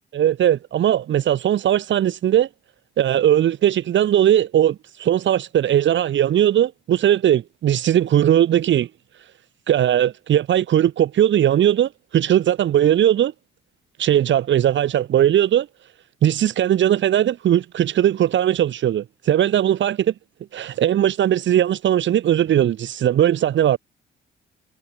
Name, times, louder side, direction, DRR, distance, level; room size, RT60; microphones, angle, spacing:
voice 1, 0.1-2.5 3.0-8.9 9.7-13.3 14.0-15.7 16.2-20.1 20.5-23.8, right 11 dB, 70° right, 4.0 m, -19 dB
cardioid pair, 90°, 20 cm